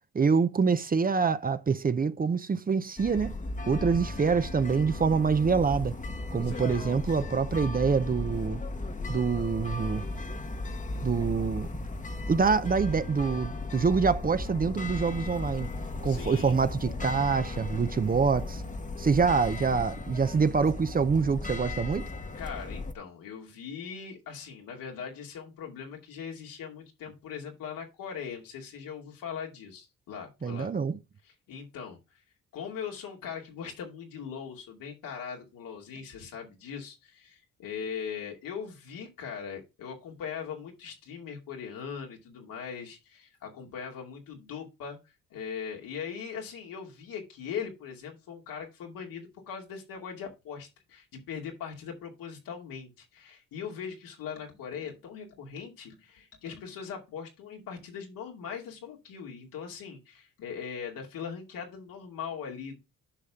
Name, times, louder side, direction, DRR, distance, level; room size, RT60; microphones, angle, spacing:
voice 1, 0.1-3.4 3.7-6.0 6.3-8.6 9.1-10.0 11.0-11.7 12.3-15.7 16.0-18.6 19.0-22.1 30.4-31.0, right 5 dB, 25° right, 0.6 m, -26 dB
sound 1, 3.0-22.9, left 2 dB, 25° left, 1.1 m, -36 dB
voice 2, 6.3-6.9 16.0-16.6 22.3-30.7 31.2-32.0 32.5-45.0 45.3-62.8, left 7 dB, 85° left, 2.5 m, -40 dB
10.0 x 5.5 x 3.6 m
cardioid pair, 85°, 33 cm